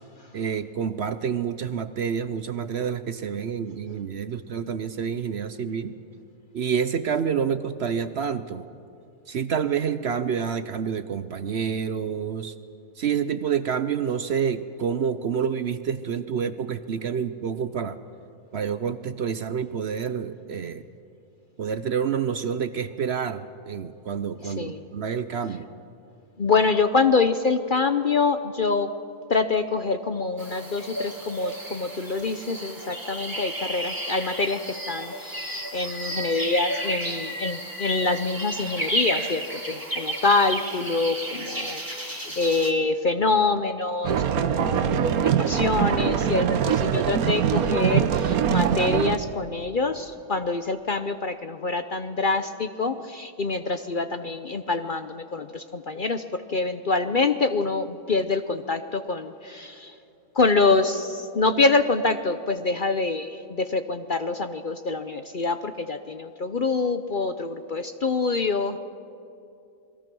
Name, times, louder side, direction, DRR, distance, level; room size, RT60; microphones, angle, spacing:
voice 1, 0.3-5.9 6.5-8.7 9.3-12.6 13.0-18.0 18.5-20.8 21.6-25.6, right 7 dB, 55° right, 12 dB, 0.8 m, -28 dB
voice 2, 24.4-24.8 26.4-28.9 29.3-34.6 34.9-60.0 60.3-68.8, left 3 dB, 45° left, 9 dB, 0.8 m, -25 dB
sound 1, 30.4-42.7, right 1 dB, 15° right, 2.2 m, -32 dB
sound 2, 44.0-49.2, right 8 dB, 85° right, 1.3 m, -23 dB
28.5 x 21.0 x 6.2 m, 2.6 s
omnidirectional pair, 1.5 m